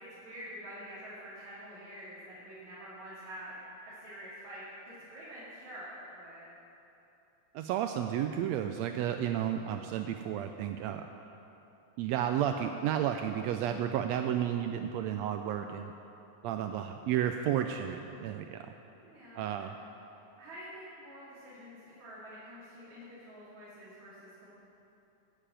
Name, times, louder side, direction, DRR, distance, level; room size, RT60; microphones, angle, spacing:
voice 1, 0.1-3.6 3.9-6.5 19.0-19.4 20.4-24.5, equal, 65° right, -10 dB, 3.8 m, -47 dB
voice 2, 7.5-11.1 12.0-15.9 16.4-18.7 19.3-19.7, right 10 dB, 85° right, 6 dB, 1.5 m, -32 dB
14.0 x 6.8 x 8.8 m, 2.9 s
omnidirectional pair, 3.6 m